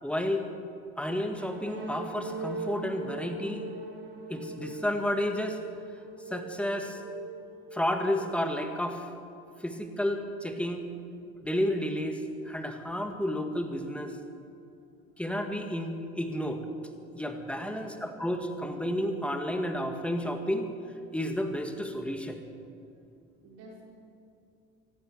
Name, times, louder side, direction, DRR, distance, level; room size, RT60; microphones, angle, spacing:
voice 1, 0.0-0.5 1.0-3.7 4.3-5.6 6.3-7.0 7.7-9.1 9.6-10.9 11.4-14.2 15.2-16.6 17.2-20.7 21.1-22.4, equal, 5° left, 5 dB, 1.8 m, -31 dB
sound 1, 1.3-9.0, right 2 dB, 40° right, 3.6 m, -41 dB
voice 2, 17.5-17.9 23.4-23.8, right 1 dB, 70° right, -3 dB, 5.3 m, -50 dB
16.5 x 12.0 x 7.3 m, 2.5 s
supercardioid pair, 80°, 29 cm